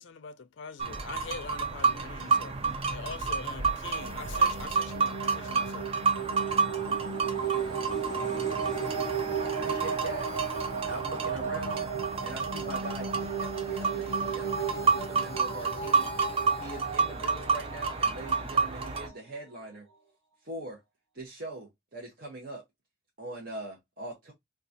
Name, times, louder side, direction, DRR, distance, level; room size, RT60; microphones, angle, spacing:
voice 1, 0.0-2.6 2.9-5.9, left 5 dB, 65° left, 0.4 m, -43 dB
sound 1, 0.8-19.1, right 4 dB, 30° right, 0.4 m, -30 dB
sound 2, 3.7-18.3, right 6 dB, 65° right, 1.5 m, -35 dB
voice 2, 6.6-9.8 11.1-11.2, equal, ahead, 1.6 m, -48 dB
voice 3, 9.3-10.3 10.9-11.9 12.2-16.1 16.6-19.8 20.4-20.8 21.1-22.6 23.2-24.3, right 1 dB, 45° right, 0.9 m, -42 dB
sound 3, 13.3-20.0 20.3-20.4, left 1 dB, 80° right, 0.8 m, -44 dB
3.8 x 2.4 x 2.6 m
head